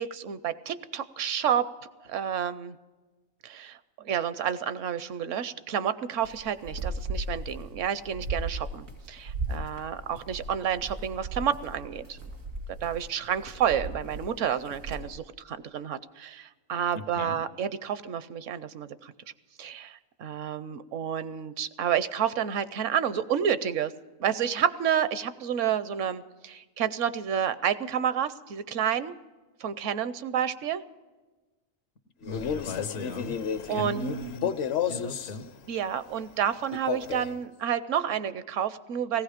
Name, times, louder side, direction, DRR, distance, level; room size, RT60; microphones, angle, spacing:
voice 1, 0.0-1.7 2.0-2.8 3.4-12.2 12.8-19.1 19.6-23.9 24.2-29.2 29.6-30.8 33.7-34.0 35.7-39.2, right 9 dB, 70° right, 14 dB, 1.0 m, -30 dB
sound 1, 6.2-15.1, right 2 dB, 90° right, 2.9 m, -37 dB
voice 2, 16.9-17.4 32.2-33.4 33.7-34.5 34.9-35.5, left 2 dB, 80° left, 8 dB, 1.6 m, -37 dB
Male speech man speaking, 32.2-35.4 36.7-37.4, left 8 dB, 60° left, 0.9 m, -32 dB
17.5 x 15.5 x 5.0 m, 1.3 s
omnidirectional pair, 1.4 m